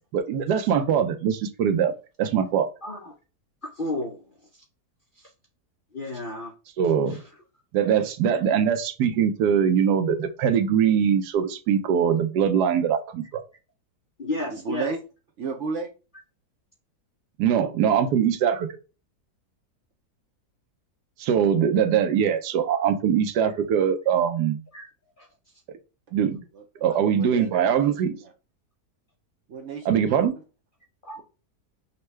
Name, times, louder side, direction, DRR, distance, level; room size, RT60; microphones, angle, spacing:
voice 1, 0.1-1.9 2.2-2.7 6.8-7.2 7.7-13.4 17.4-18.7 21.2-24.6 26.1-26.4 26.8-28.2 29.8-30.3, right 8 dB, 80° right, 1.2 m, -22 dB
voice 2, 2.8-3.1 3.6-4.2 5.2-5.3 5.9-6.5 7.1-7.2 14.2-14.9 24.7-24.8 25.2-25.3 31.0-31.2, left 2 dB, 55° left, 0.6 m, -32 dB
voice 3, 14.5-15.0 15.4-15.9 26.5-27.9 28.2-28.3 29.5-30.2 31.2-31.3, right 4 dB, 65° right, 0.7 m, -34 dB
5.4 x 2.2 x 3.1 m
omnidirectional pair, 1.7 m